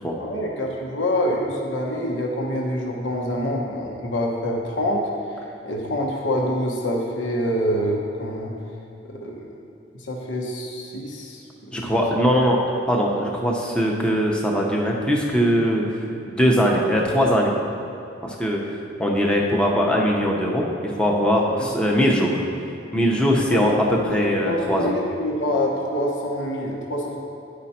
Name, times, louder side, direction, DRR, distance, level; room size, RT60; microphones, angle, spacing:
voice 1, 0.2-5.0 5.3-8.5 9.0-9.5 9.9-11.9 21.6-21.7 23.5-23.7 24.0-27.2, equal, 80° left, -1 dB, 1.0 m, -26 dB
voice 2, 11.7-12.6 12.9-16.0 16.3-17.5 18.2-18.6 19.0-22.3 22.9-24.9, equal, 5° left, -2 dB, 0.7 m, -21 dB
10.5 x 5.0 x 4.2 m, 2.7 s
head